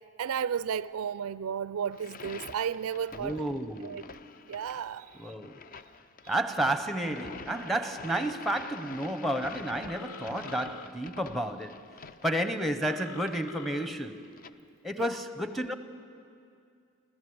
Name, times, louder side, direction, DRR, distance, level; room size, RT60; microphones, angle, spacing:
voice 1, 0.2-3.4 3.8-4.0 4.5-5.1 15.0-15.1, right 7 dB, 75° right, 0.4 m, -33 dB
sound 1, 1.9-14.5, left 4 dB, 40° left, 0.5 m, -47 dB
voice 2, 3.1-4.2 5.2-5.6 6.3-11.8 12.2-14.3 14.8-15.7, right 1 dB, ahead, 0.7 m, -31 dB
Telephone, 9.9-10.9 12.9-13.9, left 5 dB, 70° left, 0.8 m, -45 dB
29.0 x 13.0 x 7.8 m
head